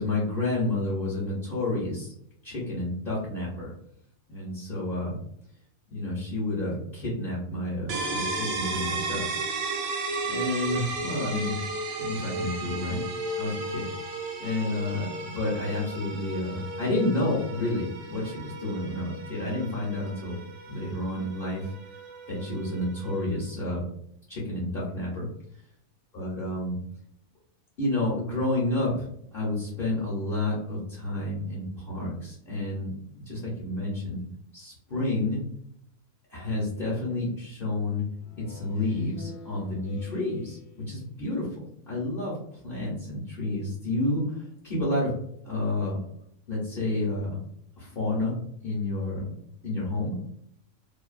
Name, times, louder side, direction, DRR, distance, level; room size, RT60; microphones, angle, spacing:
voice 1, 0.0-2.1 2.4-3.7 4.3-5.2 5.9-9.4 10.3-11.7 12.0-13.0 13.4-13.9 14.4-20.4 20.7-21.7 22.3-23.8 24.3-25.3 26.1-26.8 27.8-33.0 33.3-34.2 34.5-35.4 36.3-38.0 38.4-42.4 42.6-45.1 45.4-46.0 46.5-47.4 47.8-48.4 48.6-49.3 49.6-50.2, left 2 dB, 50° left, -7 dB, 0.8 m, -30 dB
sound 1, 7.9-23.5, right 3 dB, 70° right, 0.8 m, -34 dB
Speech synthesizer, 38.2-41.2, left 5 dB, 80° left, 1.0 m, -48 dB
2.6 x 2.2 x 2.4 m, 0.71 s
omnidirectional pair, 1.4 m